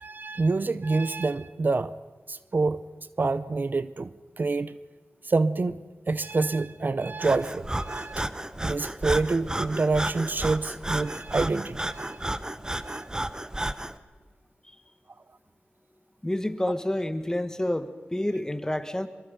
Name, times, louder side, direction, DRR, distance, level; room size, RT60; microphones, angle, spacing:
voice 1, 0.0-1.9 2.3-2.8 3.2-4.8 5.2-5.8 6.1-8.3 8.6-12.3 12.7-13.1, right 3 dB, 50° right, 15 dB, 0.7 m, -27 dB
Breathing, 7.2-14.0, right 1 dB, 20° right, 1.0 m, -32 dB
voice 2, 16.2-19.1, left 1 dB, 15° left, 10 dB, 1.6 m, -28 dB
23.0 x 22.5 x 5.3 m, 1.4 s
cardioid pair, 45°, 4 cm